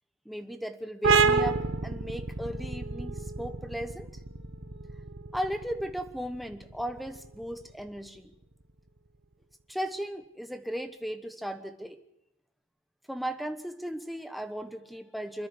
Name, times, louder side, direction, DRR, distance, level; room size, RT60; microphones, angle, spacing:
voice 1, 0.2-4.1 5.3-8.3 9.7-12.0 13.1-15.5, equal, ahead, 8 dB, 1.0 m, -36 dB
sound 1, 1.0-8.3, right 4 dB, 75° right, 1.3 m, -29 dB
26.5 x 10.5 x 9.7 m, 0.86 s
head